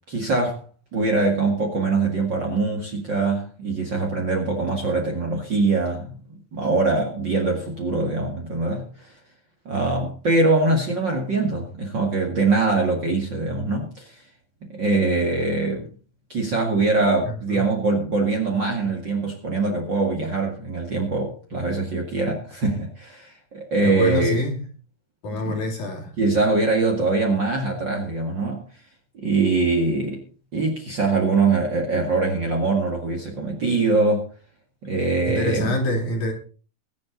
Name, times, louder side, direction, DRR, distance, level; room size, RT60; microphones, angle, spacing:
voice 1, 0.1-0.6 0.9-6.2 6.5-9.1 9.7-14.2 14.6-15.9 16.3-24.4 25.3-25.6 26.2-28.6 29.1-30.2 30.5-34.3 34.8-35.7, right 3 dB, 40° right, 2.1 m, -23 dB
voice 2, 17.2-17.8 23.8-24.5 25.2-26.1 35.3-36.3, left 1 dB, 55° left, 4.1 m, -26 dB
22.0 x 7.7 x 3.9 m
omnidirectional pair, 4.1 m